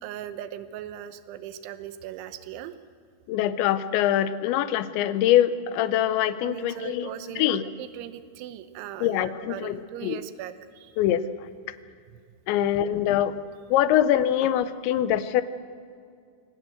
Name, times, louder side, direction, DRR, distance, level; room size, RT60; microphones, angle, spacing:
voice 1, 0.0-2.7 6.4-10.9 12.1-12.2, right 11 dB, 85° right, 11 dB, 3.4 m, -39 dB
voice 2, 3.3-7.1 7.4-7.6 9.0-10.2 11.0-11.2 12.5-13.3 13.7-15.4, left 11 dB, 80° left, 13 dB, 3.0 m, -23 dB
24.0 x 18.0 x 7.8 m, 2.3 s
omnidirectional pair, 5.3 m